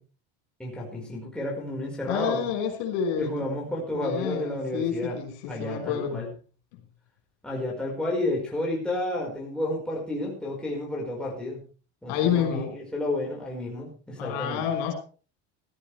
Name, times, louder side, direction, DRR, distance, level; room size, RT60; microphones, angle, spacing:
voice 1, 0.6-2.5 3.2-5.2 5.5-6.3 7.4-11.6 12.0-14.6, left 1 dB, 5° left, -4 dB, 5.1 m, -31 dB
voice 2, 2.1-3.3 3.9-6.3 12.1-12.7 14.2-14.9, left 8 dB, 75° left, 3 dB, 5.6 m, -28 dB
17.0 x 14.0 x 3.4 m, 0.37 s
cardioid pair, 155°, 34 cm